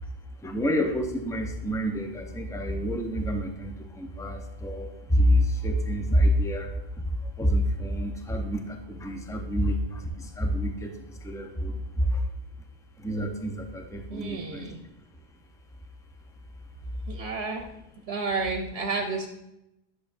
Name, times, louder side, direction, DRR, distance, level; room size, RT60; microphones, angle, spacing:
voice 1, 0.4-6.7 7.4-10.9 11.2-12.3 13.0-14.7, equal, 5° left, 3 dB, 0.6 m, -27 dB
voice 2, 14.1-14.8 17.1-17.6 18.1-19.3, right 4 dB, 70° right, 3 dB, 1.0 m, -31 dB
9.4 x 6.4 x 2.6 m, 0.85 s
omnidirectional pair, 1.1 m